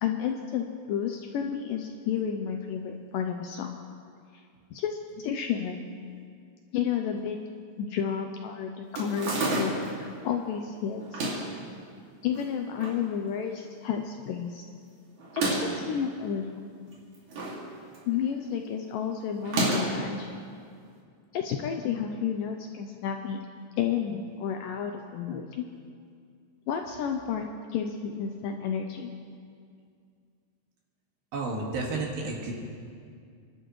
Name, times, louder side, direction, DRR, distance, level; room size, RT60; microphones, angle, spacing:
voice 1, 0.0-3.7 4.7-5.8 6.7-7.4 7.8-11.2 12.2-14.6 15.3-16.5 18.1-20.3 21.3-23.4 23.8-25.7 26.7-29.1, left 8 dB, 80° left, 4 dB, 2.0 m, -31 dB
sound 1, 8.9-10.0 11.0-11.6 12.3-13.0 13.4-13.5 13.6-13.7 15.2-15.8 16.9-17.6 17.9-18.3 19.4-20.1, right 2 dB, 55° right, 3.5 m, -30 dB
voice 2, 31.3-32.5, right 3 dB, 70° right, -2 dB, 3.8 m, -31 dB
30.0 x 11.5 x 3.2 m, 2.3 s
omnidirectional pair, 4.4 m